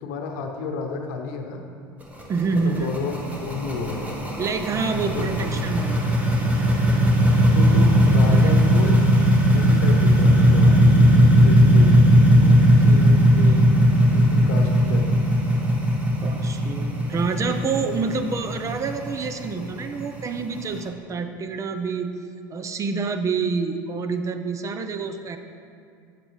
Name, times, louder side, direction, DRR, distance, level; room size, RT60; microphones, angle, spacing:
voice 1, 0.0-1.7 2.5-3.1 3.4-4.1 5.1-5.2 7.5-9.0 9.5-11.1 11.4-12.1 14.1-15.2, left 4 dB, 70° left, 4 dB, 0.8 m, -31 dB
sound 1, 2.0-20.8, equal, 15° right, 1.1 m, -18 dB
voice 2, 2.3-3.0 4.4-6.1 8.2-8.5 12.3-13.7 16.2-22.1 22.5-25.4, right 4 dB, 30° right, 8 dB, 0.5 m, -28 dB
7.4 x 6.4 x 3.1 m, 2.3 s
hypercardioid pair, 95°, 11 cm